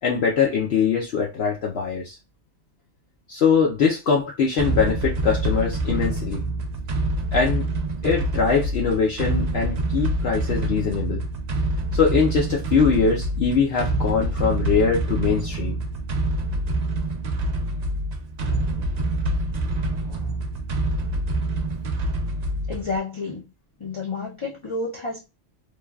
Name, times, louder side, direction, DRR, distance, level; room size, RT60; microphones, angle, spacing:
voice 1, 0.0-2.2 3.3-6.4 7.3-7.7 8.0-11.2 11.9-15.8, left 6 dB, 65° left, 0.8 m, -22 dB
sound 1, 4.6-23.0, right 1 dB, 60° right, 0.4 m, -26 dB
voice 2, 22.7-23.5 23.8-25.2, left 3 dB, 35° left, 0.5 m, -30 dB
3.2 x 2.2 x 2.2 m
omnidirectional pair, 1.2 m